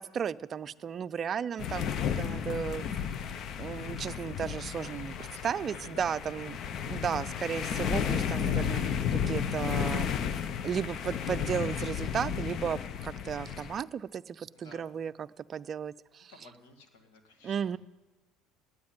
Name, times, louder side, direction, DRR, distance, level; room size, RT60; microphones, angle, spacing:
voice 1, 0.0-1.9 2.2-2.8 3.6-5.1 5.4-10.1 10.6-16.3 17.4-17.8, right 7 dB, 40° right, 17 dB, 0.4 m, -34 dB
sound 1, 1.6-13.8, left 8 dB, 50° left, 0.7 m, -33 dB
voice 2, 4.8-6.1 14.5-15.0 16.3-17.8, left 3 dB, 85° left, 4 dB, 1.9 m, -53 dB
9.4 x 8.8 x 8.8 m, 1.2 s
supercardioid pair, 105°, 0 cm